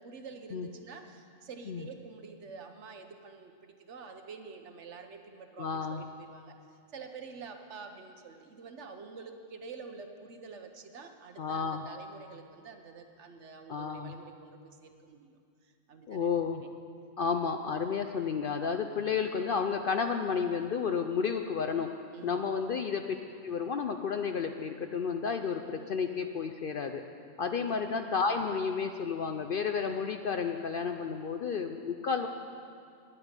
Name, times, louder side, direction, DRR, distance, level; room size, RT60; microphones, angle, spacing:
voice 1, 0.0-16.7 22.1-22.5 27.4-27.8, right 5 dB, 65° right, 6 dB, 1.2 m, -48 dB
voice 2, 5.6-6.0 11.4-11.8 13.7-14.1 16.1-16.6 17.2-23.2 23.4-27.0 27.4-32.3, left 5 dB, 55° left, 6 dB, 0.6 m, -31 dB
10.0 x 8.7 x 9.6 m, 2.3 s
omnidirectional pair, 1.3 m